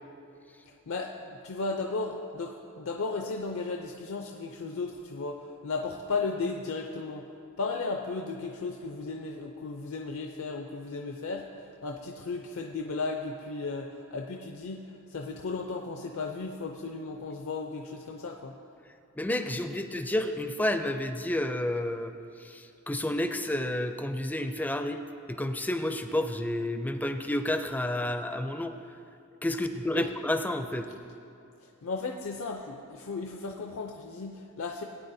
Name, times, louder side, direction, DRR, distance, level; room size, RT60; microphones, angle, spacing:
voice 1, 0.9-7.3 7.6-14.8 15.1-18.5 29.9-30.1 31.8-34.8, left 3 dB, 70° left, 2 dB, 0.5 m, -35 dB
voice 2, 19.2-22.1 22.4-25.0 25.3-28.7 29.4-30.9, left 1 dB, 10° left, 7 dB, 0.4 m, -30 dB
17.0 x 9.1 x 2.7 m, 2.6 s
head